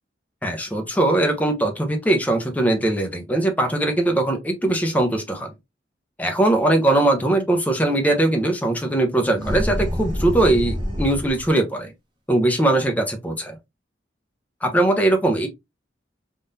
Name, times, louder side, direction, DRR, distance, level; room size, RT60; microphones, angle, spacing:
voice 1, 0.4-5.5 6.2-11.9 12.3-13.6 14.6-15.5, right 1 dB, 10° left, 0.6 m, -20 dB
sound 1, 9.3-11.5, equal, 25° right, 0.9 m, -26 dB
3.6 x 2.5 x 2.7 m
head